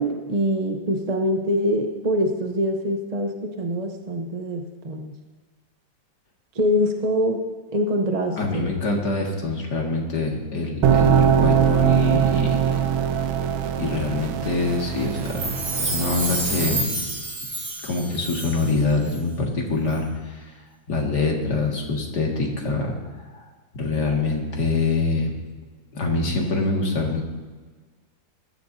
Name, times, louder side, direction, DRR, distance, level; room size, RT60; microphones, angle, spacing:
voice 1, 0.0-5.1 6.5-7.4 7.7-8.7, equal, 35° right, 3 dB, 0.6 m, -24 dB
voice 2, 8.4-12.8 13.8-17.2 17.8-20.5 20.9-23.0 23.3-23.5 23.7-25.3 25.9-27.2, left 3 dB, 55° left, -1 dB, 2.6 m, -25 dB
sound 1, 10.8-16.8, right 8 dB, 90° right, 1.6 m, -22 dB
Chime, 15.2-18.8 19.1-19.2, right 2 dB, 60° right, 2.9 m, -29 dB
21.0 x 14.0 x 2.8 m, 1.4 s
omnidirectional pair, 2.1 m